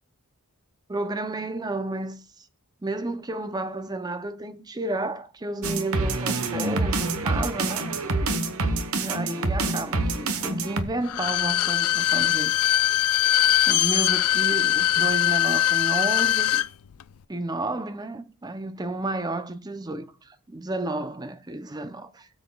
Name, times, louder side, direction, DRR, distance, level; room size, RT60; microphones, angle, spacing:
voice 1, 0.9-2.5 2.8-7.9 8.9-12.9 13.2-16.6 17.3-22.3, right 2 dB, 20° right, 0.5 m, -32 dB
sound 1, 5.6-10.8, right 2 dB, 70° right, 1.0 m, -26 dB
Bowed string instrument, 11.0-16.7 17.0-17.1, left 12 dB, 80° left, 0.4 m, -22 dB
17.5 x 7.5 x 2.3 m
head